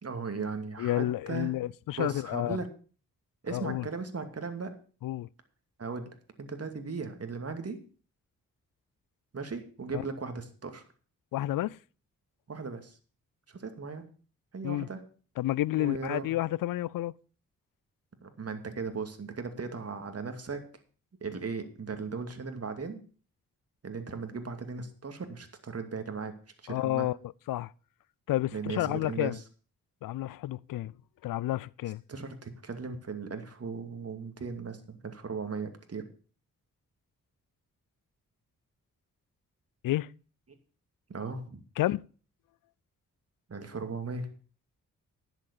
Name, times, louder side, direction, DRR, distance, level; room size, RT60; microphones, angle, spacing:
voice 1, 0.0-1.5 2.0-2.7 3.4-4.7 5.8-7.8 9.3-10.8 12.5-13.0 13.5-14.1 14.5-15.0 15.8-16.3 18.2-20.6 21.2-23.0 23.8-26.3 26.6-27.1 28.5-29.4 32.1-36.1 41.1-41.6 43.5-44.3, right 4 dB, 45° right, 2.4 m, -37 dB
voice 2, 0.8-2.6 3.5-3.8 5.0-5.3 9.9-10.0 11.3-11.8 14.6-14.9 15.4-17.1 26.7-27.2 27.5-27.7 28.3-29.4 30.0-30.9 31.2-32.0 39.8-40.1 41.8-42.1, left 15 dB, 75° left, 0.5 m, -30 dB
10.5 x 7.6 x 6.7 m
supercardioid pair, 50°, 34 cm